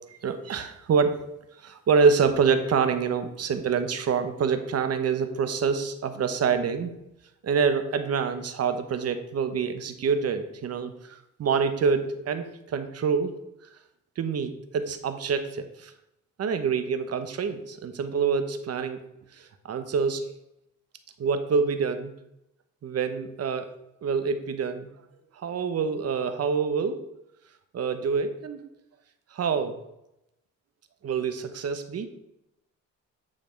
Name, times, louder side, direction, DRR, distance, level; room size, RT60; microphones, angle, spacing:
voice 1, 0.1-1.2 1.6-6.9 7.4-13.3 14.2-15.9 16.4-19.0 19.4-20.2 21.2-22.1 22.8-23.7 24.0-24.9 25.4-27.0 27.7-28.6 29.3-29.8 31.0-32.1, right 5 dB, 55° right, 9 dB, 1.0 m, -26 dB
9.7 x 3.5 x 6.4 m, 0.85 s
cardioid pair, 90°, 30 cm